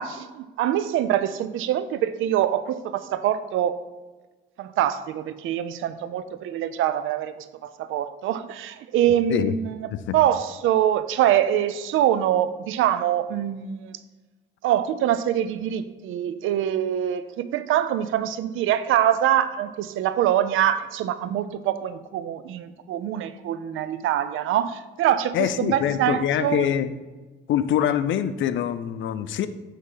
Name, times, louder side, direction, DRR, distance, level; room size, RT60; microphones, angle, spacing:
voice 1, 0.0-3.8 4.6-14.0 14.6-26.7, right 11 dB, 85° right, 13 dB, 0.6 m, -24 dB
voice 2, 25.3-27.0 27.5-29.5, left 10 dB, 75° left, 13 dB, 0.6 m, -24 dB
9.5 x 3.7 x 5.6 m, 1.3 s
cardioid pair, 90°, 20 cm